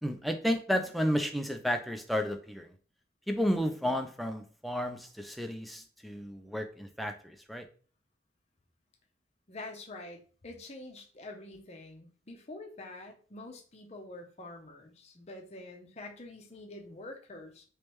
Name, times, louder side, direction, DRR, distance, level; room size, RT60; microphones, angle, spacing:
voice 1, 0.0-2.7 3.3-7.7, equal, ahead, 0.4 m, -32 dB
voice 2, 9.5-10.2 10.4-17.6, left 2 dB, 35° left, 0.7 m, -46 dB
3.3 x 3.1 x 3.0 m
head